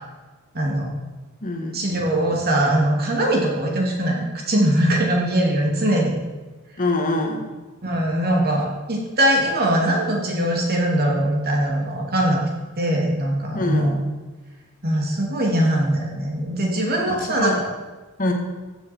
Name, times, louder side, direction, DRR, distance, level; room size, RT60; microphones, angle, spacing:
voice 1, 0.5-0.9 1.7-6.1 7.8-12.4 12.8-14.0 14.8-17.7, right 1 dB, 45° right, -1 dB, 2.7 m, -21 dB
voice 2, 1.4-1.9 6.8-7.5 13.5-14.0 17.4-17.6 18.2-18.3, left 2 dB, 40° left, 3 dB, 1.5 m, -24 dB
14.5 x 7.7 x 4.5 m, 1.2 s
head